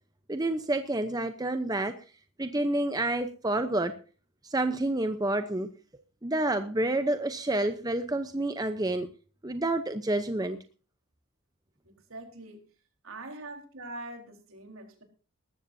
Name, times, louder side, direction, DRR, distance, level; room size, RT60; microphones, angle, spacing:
voice 1, 0.3-1.9 2.4-4.0 4.4-5.7 6.2-9.1 9.4-10.6, right 2 dB, 15° right, 8 dB, 0.8 m, -29 dB
voice 2, 11.8-12.6 13.0-15.0, right 2 dB, 70° right, 3 dB, 4.2 m, -43 dB
20.0 x 14.0 x 2.7 m, 0.38 s
head